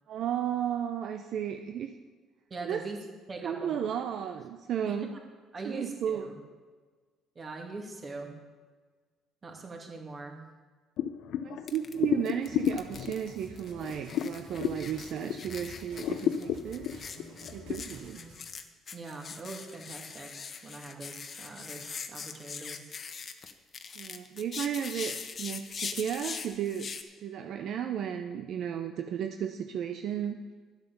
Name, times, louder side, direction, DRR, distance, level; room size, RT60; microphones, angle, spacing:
voice 1, 0.1-1.9 2.6-2.8 3.4-5.1 5.6-6.3 11.4-16.9 17.5-18.2 24.0-26.9 27.2-30.4, right 9 dB, 65° right, 6 dB, 0.6 m, -34 dB
voice 2, 2.5-3.0 3.3-3.8 4.9-5.0 5.5-6.4 7.4-8.4 9.4-10.4 18.9-20.3 20.6-22.9, right 3 dB, 35° right, 2 dB, 2.5 m, -42 dB
sound 1, 11.0-15.6 15.9-17.8, left 9 dB, 70° left, 0.5 m, -32 dB
sound 2, 11.7-11.9 12.3-27.0, left 5 dB, 45° left, 1.0 m, -42 dB
sound 3, 12.4-18.4, right 2 dB, 80° right, 3.0 m, -51 dB
10.5 x 8.2 x 6.8 m, 1.5 s
supercardioid pair, 80°, 0 cm